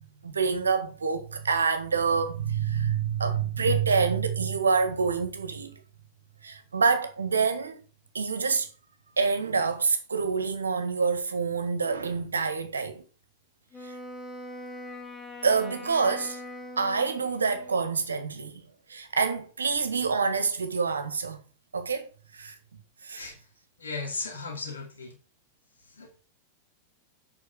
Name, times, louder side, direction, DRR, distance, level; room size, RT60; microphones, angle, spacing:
voice 1, 0.2-5.8 6.4-7.8 8.1-8.7 9.2-13.0 13.8-13.9 15.4-16.4 16.8-21.4 21.7-22.5 23.0-23.3, right 5 dB, 75° right, 1.6 m, -27 dB
Wind instrument woodwind instrument, 13.7-17.9, left 1 dB, 20° left, 2.1 m, -42 dB
voice 2, 23.2-23.5 23.8-25.2 25.8-26.1, left 3 dB, 75° left, 2.9 m, -36 dB
8.4 x 5.8 x 6.0 m
figure-of-eight pair, 90°, 0 cm